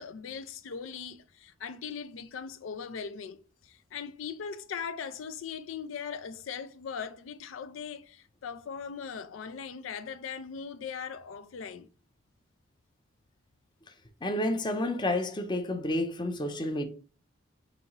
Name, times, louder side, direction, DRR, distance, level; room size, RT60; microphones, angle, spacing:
voice 1, 0.0-11.9, left 6 dB, 85° left, 0.4 m, -40 dB
voice 2, 14.2-16.8, left 1 dB, 25° left, 0.5 m, -30 dB
5.1 x 2.7 x 2.9 m
head